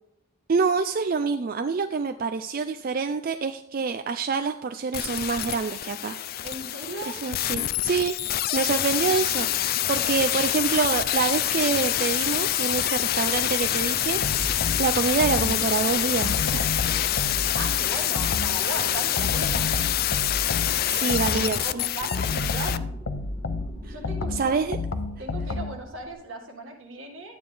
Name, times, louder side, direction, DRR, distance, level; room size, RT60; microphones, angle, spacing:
voice 1, 0.5-6.2 7.0-16.7 20.9-21.8 23.8-24.0 24.3-24.8, right 5 dB, 45° right, 8 dB, 0.4 m, -26 dB
sound 1, 4.9-22.8 23.1-23.2, left 12 dB, 45° left, 0.3 m, -26 dB
voice 2, 6.4-7.2 17.5-19.8 20.9-22.9 23.9-24.6 25.2-27.4, right 2 dB, 75° right, 2 dB, 1.9 m, -37 dB
sound 2, 13.6-26.1, equal, 10° left, 2.1 m, -45 dB
sound 3, 14.2-15.8 16.2-18.7 19.2-21.6 22.1-25.9, left 3 dB, 75° left, 0.8 m, -30 dB
11.5 x 8.6 x 3.4 m, 0.78 s
head